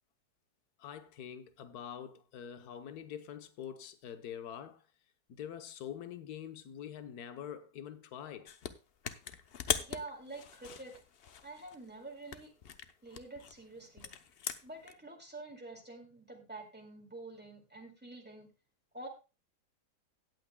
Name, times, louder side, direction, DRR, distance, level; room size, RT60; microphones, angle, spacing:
voice 1, 0.8-4.8 5.3-8.5, left 9 dB, 70° left, 1.4 m, -45 dB
sound 1, 8.4-8.7 9.0-11.8 12.3-14.9, left 7 dB, 55° left, 0.7 m, -40 dB
voice 2, 9.7-10.9 11.4-12.5 13.0-14.1 14.6-18.5 18.9-19.1, right 2 dB, 5° right, 2.2 m, -47 dB
17.0 x 8.7 x 2.2 m
omnidirectional pair, 1.7 m